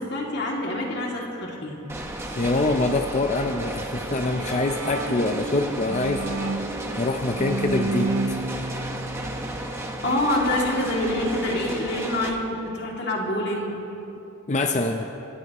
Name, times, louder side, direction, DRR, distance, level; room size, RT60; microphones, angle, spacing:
voice 1, 0.0-1.8 9.8-13.7, left 1 dB, 50° left, -2 dB, 2.5 m, -26 dB
sound 1, 1.9-12.3, right 1 dB, 10° right, 1.2 m, -34 dB
voice 2, 2.4-6.5 7.0-8.1 14.5-15.1, left 2 dB, 35° left, 4 dB, 0.6 m, -25 dB
Bowed string instrument, 4.1-10.2, right 3 dB, 75° right, 0.6 m, -31 dB
25.5 x 17.5 x 3.1 m, 3.0 s
head